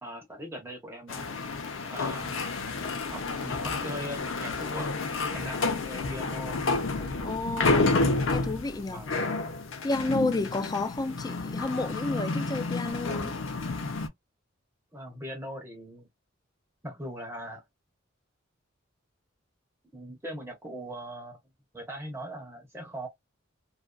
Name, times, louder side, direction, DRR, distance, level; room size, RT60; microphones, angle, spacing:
voice 1, 0.0-1.4 1.9-2.4 3.1-4.9 5.3-6.6 8.9-9.1 14.9-16.1 16.8-17.6 19.9-21.4 21.7-23.1, equal, 10° right, 0.7 m, -40 dB
sound 1, 1.1-14.1, left 3 dB, 70° left, 0.6 m, -30 dB
voice 2, 7.2-8.0 8.3-9.0 9.8-13.4, left 2 dB, 20° left, 0.3 m, -31 dB
2.4 x 2.4 x 2.2 m
head